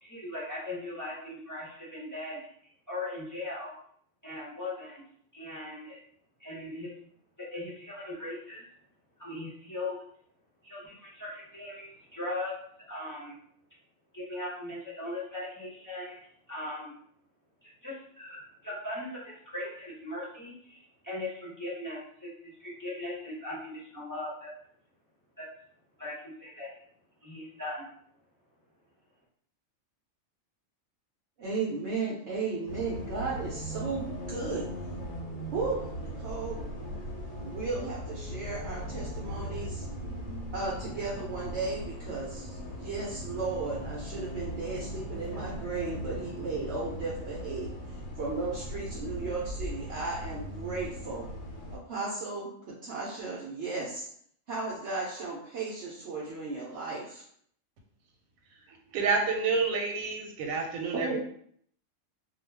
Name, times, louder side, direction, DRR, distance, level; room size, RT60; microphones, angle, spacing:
voice 1, 0.0-2.4 2.9-3.7 4.2-5.0 5.3-6.0 6.4-6.9 7.4-8.6 9.2-10.0 10.6-12.5 12.8-13.4 14.1-17.0 17.6-24.5 25.4-25.5 26.0-26.7 27.2-27.8, left 2 dB, 20° left, -8 dB, 0.6 m, -39 dB
voice 2, 31.4-34.6 35.5-36.6 37.4-39.9 40.5-47.7 48.2-51.3 51.7-54.1 54.5-57.2 60.9-61.2, right 3 dB, 65° right, -4 dB, 0.8 m, -35 dB
Bus, 32.7-51.8, equal, 90° left, 1.1 m, -39 dB
voice 3, 58.7-61.2, right 4 dB, 90° right, 2 dB, 1.0 m, -29 dB
2.3 x 2.3 x 3.2 m, 0.63 s
omnidirectional pair, 1.4 m